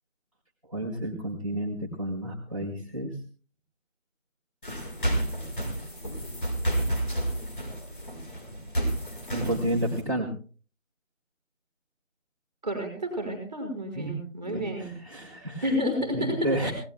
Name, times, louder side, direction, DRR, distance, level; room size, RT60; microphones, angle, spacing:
voice 1, 0.7-3.1 9.3-10.3 13.9-14.1 14.5-15.7 16.1-16.7, right 1 dB, 25° right, -3 dB, 2.2 m, -31 dB
sound 1, 4.6-10.0, right 1 dB, 40° left, 6.0 m, -30 dB
voice 2, 12.6-14.9 15.6-16.7, equal, 5° right, -13 dB, 4.6 m, -30 dB
26.0 x 19.0 x 2.3 m, 0.40 s
figure-of-eight pair, 170°, 40 cm